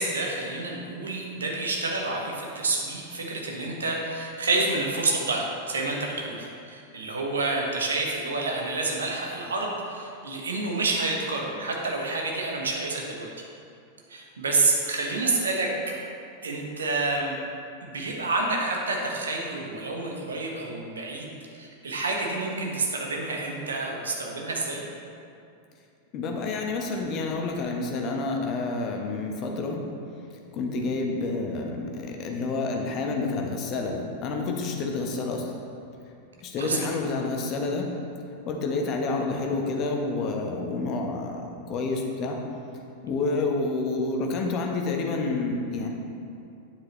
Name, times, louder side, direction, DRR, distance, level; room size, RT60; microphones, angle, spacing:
voice 1, 0.0-13.3 14.1-15.7 16.4-17.3 17.8-24.8 36.6-36.9, right 3 dB, 70° right, 0 dB, 1.3 m, -28 dB
voice 2, 26.1-29.8 30.5-35.5 36.4-37.9 38.4-42.4 43.0-45.9, left 3 dB, 35° left, 2 dB, 1.1 m, -29 dB
8.9 x 7.8 x 3.1 m, 2.6 s
figure-of-eight pair, 90°, 0 cm